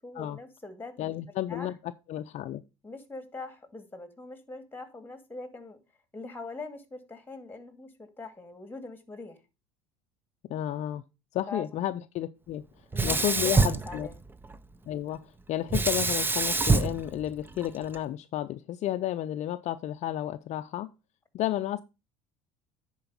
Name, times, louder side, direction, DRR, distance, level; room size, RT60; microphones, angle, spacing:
voice 1, 0.0-1.1 1.5-1.7 2.8-5.8 6.1-9.4 11.5-11.7 12.9-14.1, left 3 dB, 15° left, 2.2 m, -42 dB
voice 2, 1.0-2.6 10.5-11.0 11.3-14.1 14.9-20.9 21.3-21.8, left 12 dB, 50° left, 0.5 m, -32 dB
Sink (filling or washing), 12.9-14.6 15.7-18.0, right 3 dB, 15° right, 0.7 m, -26 dB
10.5 x 4.5 x 5.4 m
hypercardioid pair, 80°, 15 cm